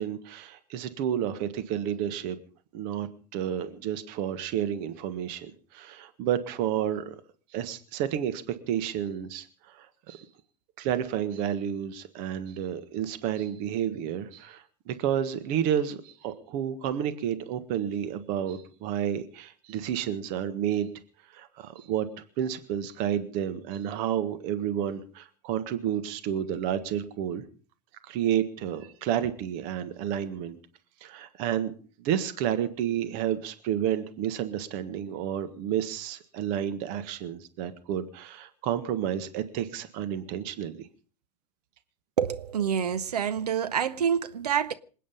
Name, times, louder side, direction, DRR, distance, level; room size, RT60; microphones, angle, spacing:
voice 1, 0.0-2.4 2.7-7.1 7.5-10.2 10.8-20.9 21.3-22.1 22.4-27.4 28.0-30.6 31.0-31.7 32.0-40.9, right 10 dB, 45° right, 1.6 m, -30 dB
voice 2, 42.2-44.7, right 8 dB, 70° right, 0.9 m, -27 dB
27.0 x 9.4 x 5.3 m
figure-of-eight pair, 95°, 21 cm